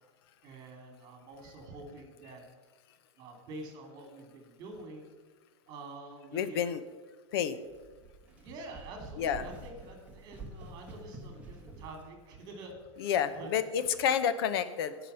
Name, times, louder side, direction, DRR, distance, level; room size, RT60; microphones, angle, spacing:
voice 1, 0.4-2.4 3.2-5.1 5.7-6.6 8.3-13.1 13.3-13.5, right 2 dB, 25° right, 4 dB, 2.5 m, -47 dB
voice 2, 6.3-6.8 7.3-7.6 9.2-9.5 13.0-15.0, left 8 dB, 50° left, 13 dB, 0.8 m, -29 dB
sound 1, 7.7-12.0, right 2 dB, 10° right, 1.2 m, -48 dB
17.0 x 6.0 x 5.6 m, 1.3 s
supercardioid pair, 170°, 16 cm